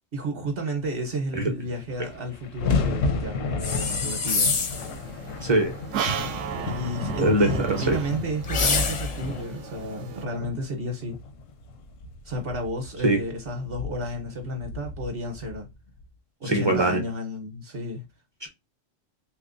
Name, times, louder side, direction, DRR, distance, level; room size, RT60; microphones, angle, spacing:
voice 1, 0.1-4.6 6.5-11.2 12.2-15.7 16.4-18.0, equal, 50° right, 1.0 m, -32 dB
sound 1, 1.4-1.5 1.7-16.0, left 4 dB, 80° left, 1.0 m, -33 dB
sound 2, 3.6-4.9 8.4-9.3, left 4 dB, 45° left, 0.5 m, -25 dB
sound 3, 4.8-10.2, right 7 dB, 75° right, 0.9 m, -34 dB
voice 2, 5.4-5.7 7.2-8.0 13.0-13.2 16.5-17.0 18.4-18.5, right 2 dB, 30° right, 0.5 m, -22 dB
3.4 x 3.0 x 2.5 m
omnidirectional pair, 1.3 m